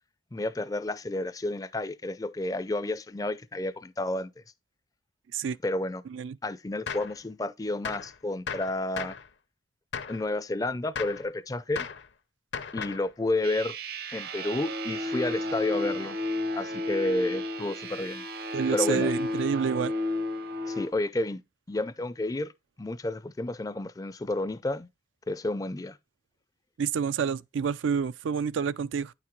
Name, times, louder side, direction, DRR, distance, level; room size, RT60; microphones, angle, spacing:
voice 1, 0.3-4.3 5.6-6.0 6.4-9.2 10.1-11.9 12.7-13.8 14.1-16.2 16.5-18.2 18.7-19.1 20.7-21.4 21.7-22.5 22.8-24.9 25.3-26.0, left 2 dB, 20° left, 0.4 m, -31 dB
Gunshot gunfire, 6.9-7.2 7.8-8.1 8.5-9.3 9.9-10.2 10.9-11.3 11.8-12.1 12.5-13.1, left 6 dB, 70° left, 0.7 m, -36 dB
sound 1, 13.4-20.9, left 1 dB, 50° right, 0.7 m, -32 dB
voice 2, 18.5-19.9 26.8-29.1, right 6 dB, 80° right, 0.4 m, -28 dB
9.2 x 5.9 x 3.1 m
head